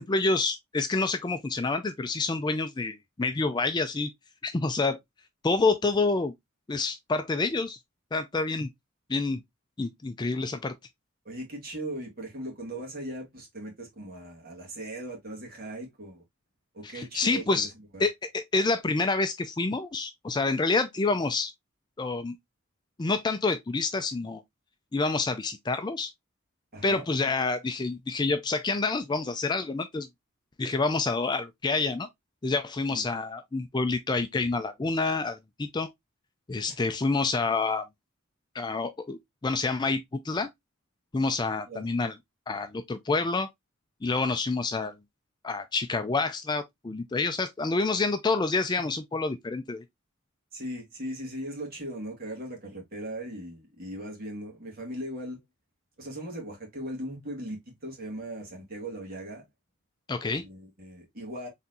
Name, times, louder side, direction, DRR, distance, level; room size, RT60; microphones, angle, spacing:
voice 1, 0.0-4.1 4.4-5.0 5.4-6.3 6.7-7.8 8.1-8.7 9.1-9.4 9.8-10.8 16.8-17.7 18.0-21.5 22.0-22.4 23.0-24.4 24.9-26.1 26.8-30.1 30.6-32.1 32.4-35.9 36.5-37.8 38.5-40.5 41.1-42.2 42.5-43.5 44.0-44.9 45.4-49.8 60.1-60.4, left 3 dB, 20° left, 0.4 m, -28 dB
voice 2, 11.3-16.2 16.7-17.7 17.9-18.0 26.7-27.0 32.8-33.0 36.7-36.8 41.7-42.1 50.5-55.4 56.0-59.4 60.4-61.5, right 1 dB, 45° right, 1.9 m, -38 dB
4.2 x 3.5 x 2.6 m
head